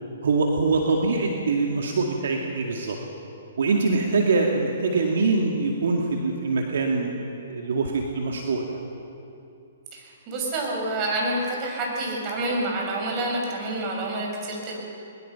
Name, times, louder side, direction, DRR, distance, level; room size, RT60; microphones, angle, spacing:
voice 1, 0.2-3.0 3.6-8.7, right 3 dB, 70° right, 1 dB, 2.2 m, -24 dB
voice 2, 9.9-14.8, right 2 dB, 35° right, -1 dB, 6.6 m, -28 dB
22.0 x 22.0 x 5.9 m, 2.7 s
hypercardioid pair, 130°, 0 cm